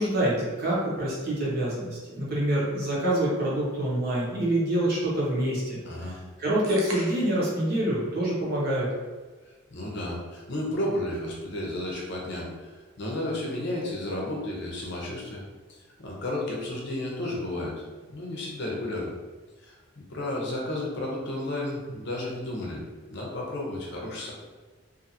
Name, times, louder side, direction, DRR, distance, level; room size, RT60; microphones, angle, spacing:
voice 1, 0.0-6.1 6.4-8.9, right 1 dB, 50° right, -6 dB, 0.9 m, -26 dB
voice 2, 5.8-6.2 9.7-12.7 13.0-15.4 16.0-19.1 19.6-22.8 23.1-24.3, left 1 dB, 55° left, -2 dB, 0.7 m, -32 dB
sound 1, 6.6-7.5, right 2 dB, 80° right, 0.5 m, -39 dB
2.6 x 2.5 x 2.7 m, 1.3 s
head